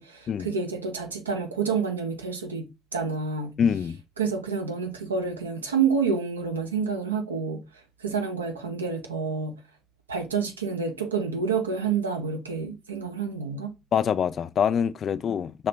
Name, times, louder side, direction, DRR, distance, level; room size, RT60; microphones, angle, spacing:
voice 1, 0.0-3.6 4.2-7.6 8.0-9.6 10.1-13.7, right 5 dB, 90° right, 0.5 m, -28 dB
voice 2, 3.6-4.0 13.9-15.7, left 7 dB, 50° left, 0.3 m, -25 dB
5.5 x 2.8 x 3.3 m
figure-of-eight pair, 45°, 0 cm